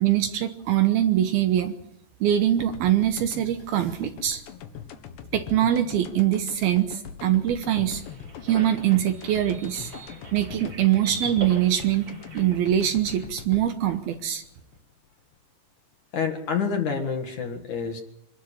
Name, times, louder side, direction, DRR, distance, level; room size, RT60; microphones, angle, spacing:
voice 1, 0.0-1.7 2.2-4.4 5.3-8.0 8.4-9.9 10.3-12.1 12.3-14.4, right 11 dB, 70° right, 8 dB, 2.7 m, -23 dB
sound 1, 2.6-15.4, left 8 dB, 75° left, 3.7 m, -42 dB
sound 2, 7.8-13.3, right 3 dB, 25° right, 3.7 m, -40 dB
voice 2, 16.1-18.0, left 6 dB, 55° left, 4 dB, 2.7 m, -28 dB
25.5 x 13.0 x 9.9 m, 0.81 s
omnidirectional pair, 5.2 m